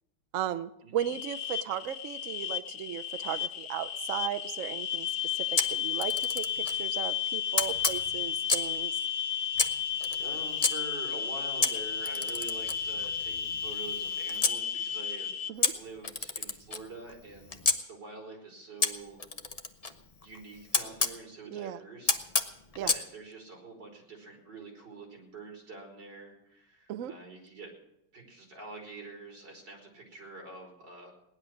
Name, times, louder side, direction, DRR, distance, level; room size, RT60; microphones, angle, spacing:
voice 1, 0.3-5.1 5.3-9.0 15.5-15.7 21.5-21.8 22.8-22.9 26.9-27.1, right 11 dB, 85° right, 10 dB, 0.7 m, -36 dB
sound 1, 1.0-15.5, left 8 dB, 90° left, 1.7 m, -33 dB
Camera, 5.6-6.8 7.5-8.8 9.5-10.7 11.6-14.6 15.6-17.8 18.8-21.2 22.1-23.0, left 4 dB, 65° left, 0.3 m, -31 dB
voice 2, 10.2-15.3 15.7-19.2 20.2-22.2 22.7-27.7 28.1-31.1, right 3 dB, 55° right, 0 dB, 4.8 m, -46 dB
18.0 x 11.0 x 6.3 m, 0.85 s
omnidirectional pair, 2.3 m